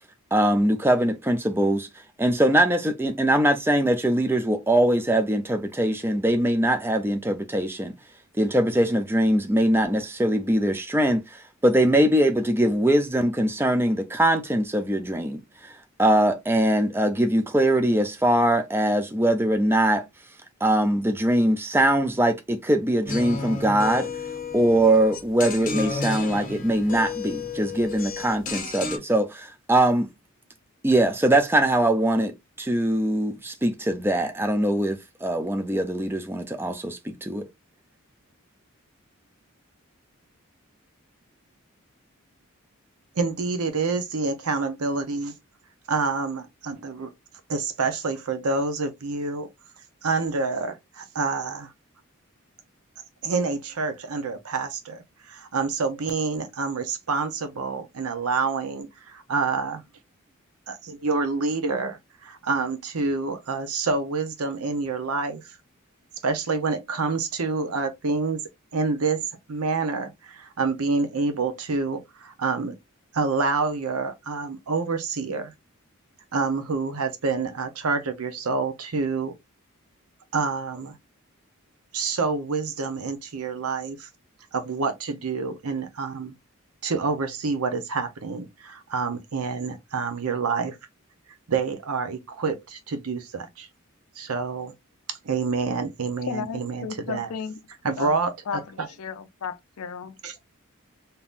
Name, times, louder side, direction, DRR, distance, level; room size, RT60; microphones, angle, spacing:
voice 1, 0.3-1.9 2.2-7.9 8.4-15.4 15.6-15.7 16.0-20.0 20.6-24.1 24.5-30.1 30.8-37.5, right 1 dB, 10° right, 0.4 m, -22 dB
sound 1, 23.0-29.0, left 4 dB, 40° left, 0.7 m, -32 dB
voice 2, 43.1-45.3 45.9-47.1 47.5-49.5 50.0-51.7 53.2-59.8 60.7-65.6 66.2-68.4 68.7-72.8 73.1-75.5 76.3-79.3 80.3-80.9 81.9-84.1 84.5-86.3 86.8-90.8 91.5-93.7 94.2-94.7 95.1-97.3 97.8-98.3 100.2-100.4, right 4 dB, 85° right, 0.7 m, -27 dB
voice 3, 96.3-97.6 98.0-98.2 98.5-100.2, left 6 dB, 80° left, 0.4 m, -34 dB
3.6 x 2.8 x 2.4 m
head